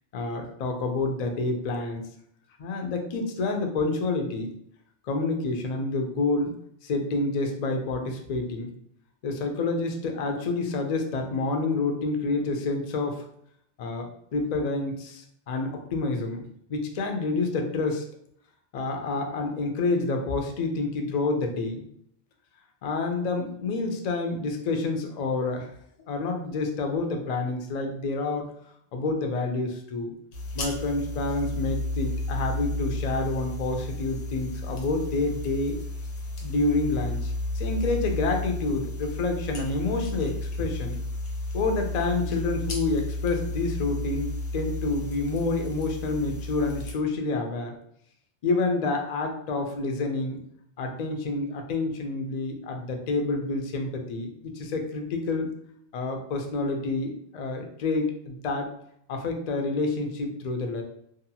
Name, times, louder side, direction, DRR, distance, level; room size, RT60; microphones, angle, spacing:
voice 1, 0.1-2.0 2.6-4.5 5.1-6.5 6.8-8.7 9.2-13.2 13.8-16.4 16.7-18.1 18.7-21.8 22.8-25.7 26.1-28.4 28.9-30.1 30.5-35.8 36.4-41.0 41.5-47.8 48.4-50.4 50.8-55.5 55.9-58.7 59.1-60.8, left 3 dB, 65° left, 3 dB, 0.4 m, -28 dB
sound 1, 30.3-46.9, left 2 dB, 85° left, 1.0 m, -33 dB
2.7 x 2.2 x 2.7 m, 0.71 s
omnidirectional pair, 1.2 m